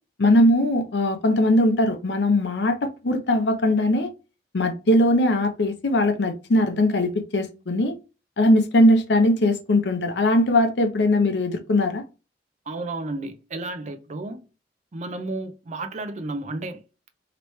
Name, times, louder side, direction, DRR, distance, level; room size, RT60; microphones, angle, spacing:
voice 1, 0.2-4.1 4.5-7.9 8.4-12.0, left 1 dB, 70° left, 0.6 m, -20 dB
voice 2, 12.7-14.4 14.9-16.8, right 2 dB, 40° right, 0.4 m, -32 dB
3.0 x 2.9 x 3.1 m
head